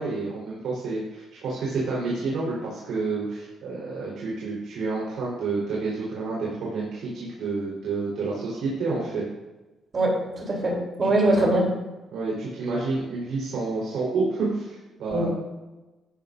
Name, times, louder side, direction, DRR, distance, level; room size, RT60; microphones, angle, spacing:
voice 1, 0.0-9.2 11.0-11.5 12.1-15.3, right 3 dB, 80° right, -6 dB, 4.1 m, -29 dB
voice 2, 9.9-11.7 15.1-15.3, right 1 dB, 40° right, -1 dB, 3.5 m, -23 dB
14.0 x 11.0 x 2.6 m, 1.1 s
cardioid pair, 90°, 0 cm